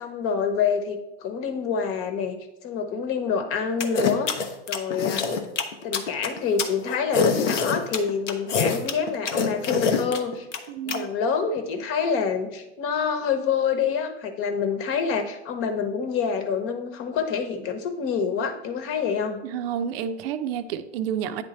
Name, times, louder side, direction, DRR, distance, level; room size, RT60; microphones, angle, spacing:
voice 1, 0.0-2.4 2.6-5.4 5.8-10.5 10.8-19.4, left 6 dB, 40° left, 6 dB, 1.1 m, -27 dB
sound 1, 3.8-11.0, left 5 dB, 85° left, 0.9 m, -25 dB
voice 2, 10.7-11.1 19.4-21.4, right 8 dB, 55° right, 10 dB, 0.6 m, -30 dB
9.4 x 3.4 x 4.2 m, 0.92 s
hypercardioid pair, 110°, 35 cm